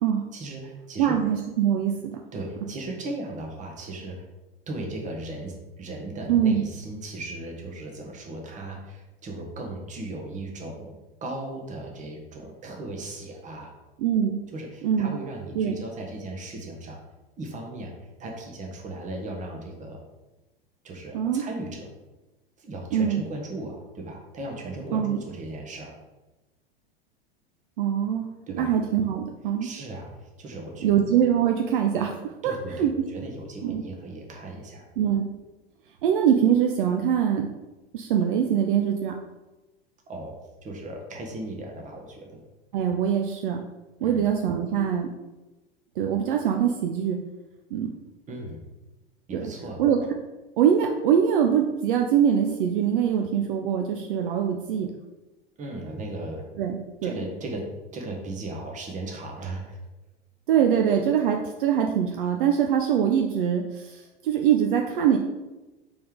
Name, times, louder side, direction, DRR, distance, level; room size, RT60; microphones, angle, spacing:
voice 1, 0.3-1.2 2.3-4.3 4.7-10.9 11.2-13.7 14.5-17.0 17.4-17.9 18.2-20.0 20.8-21.9 22.6-26.0 28.5-28.7 29.6-30.9 32.4-34.9 40.1-42.4 44.0-44.2 48.3-48.6 49.3-49.8 55.6-56.5 57.0-57.7 57.9-59.8, right 2 dB, 25° right, 1 dB, 1.1 m, -37 dB
voice 2, 1.0-2.2 6.3-6.6 14.0-14.4 14.8-15.1 15.6-15.7 21.1-21.4 22.9-23.2 24.9-25.2 27.8-28.3 28.5-29.7 30.8-32.2 32.4-32.9 33.6-33.8 35.0-35.2 36.0-37.5 37.9-39.1 42.7-43.6 44.0-45.1 46.0-47.2 47.7-47.9 49.3-49.4 49.8-50.0 50.6-54.9 56.6-57.1 60.5-65.2, right 8 dB, 60° right, 3 dB, 0.5 m, -23 dB
4.2 x 3.4 x 3.6 m, 1.1 s
figure-of-eight pair, 90°, 30 cm